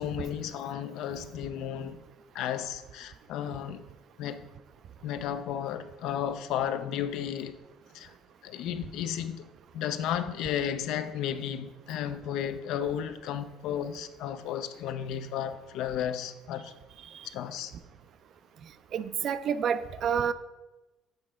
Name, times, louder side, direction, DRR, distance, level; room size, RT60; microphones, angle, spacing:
voice 1, 0.0-2.0 2.3-3.8 4.2-4.5 5.0-7.6 7.9-8.1 8.4-9.5 9.7-16.7 17.3-17.7, left 9 dB, 70° left, 0.4 m, -33 dB
voice 2, 18.9-20.3, right 7 dB, 45° right, 0.3 m, -29 dB
7.3 x 3.2 x 4.9 m
cardioid pair, 130°, 0 cm